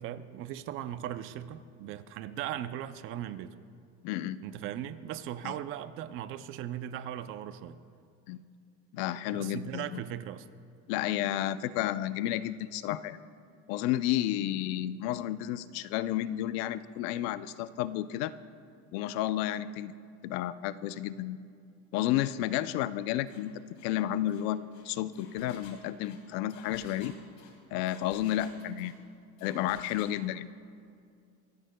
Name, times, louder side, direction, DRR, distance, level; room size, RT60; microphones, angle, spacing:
voice 1, 0.0-3.5 4.4-7.8 9.3-10.5, right 11 dB, 45° right, 13 dB, 0.5 m, -38 dB
voice 2, 4.0-4.4 5.4-5.5 8.3-8.4 8.9-10.0 10.9-13.2 13.7-18.3 18.9-19.9 20.2-21.4 21.9-27.1 27.7-29.0 29.4-30.5, left 13 dB, 85° left, 14 dB, 0.6 m, -31 dB
Engine, 23.3-23.5 23.8-23.9 24.3-29.0 29.4-30.2, left 5 dB, 65° left, 2.5 m, -55 dB
24.0 x 15.5 x 2.2 m, 2.3 s
cardioid pair, 175°, 31 cm